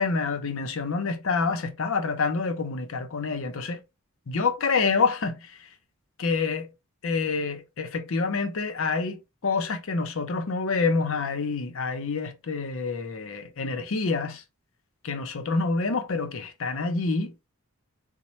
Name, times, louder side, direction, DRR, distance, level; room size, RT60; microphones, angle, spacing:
voice 1, 0.0-3.8 4.3-5.4 6.2-6.7 7.0-14.4 15.0-17.3, left 4 dB, 60° left, 0.6 m, -27 dB
4.1 x 2.1 x 2.9 m
head